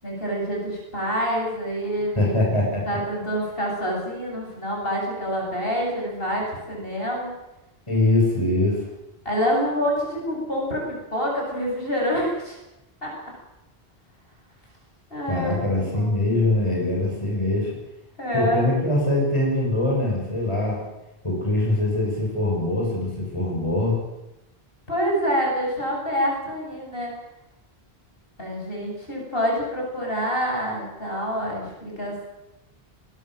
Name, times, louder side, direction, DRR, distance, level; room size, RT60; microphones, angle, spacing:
voice 1, 0.0-2.5 2.9-7.3 9.2-12.6 13.0-13.1 15.1-16.1 18.2-18.7 24.9-27.1 28.4-32.2, equal, 60° left, -1 dB, 8.3 m, -27 dB
voice 2, 2.1-3.0 7.9-8.8 15.3-17.7 18.3-20.8 21.2-24.0, left 2 dB, 30° left, -2 dB, 6.8 m, -23 dB
22.5 x 20.5 x 7.7 m, 0.95 s
omnidirectional pair, 1.1 m